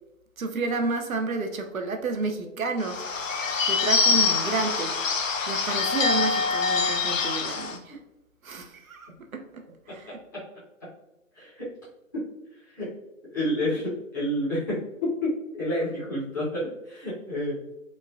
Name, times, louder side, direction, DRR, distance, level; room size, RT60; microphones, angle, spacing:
voice 1, 0.4-3.2 3.7-4.9 5.5-8.0 8.4-9.4 9.9-10.2, right 3 dB, 80° right, 4 dB, 0.6 m, -30 dB
Bird / Bell, 2.8-7.8, left 4 dB, 70° left, 0.5 m, -25 dB
voice 2, 10.1-10.4 11.3-11.7 12.1-12.2 12.6-12.9 13.3-17.6, left 1 dB, 15° left, -11 dB, 0.7 m, -29 dB
3.0 x 2.1 x 2.4 m, 0.93 s
figure-of-eight pair, 135°, 41 cm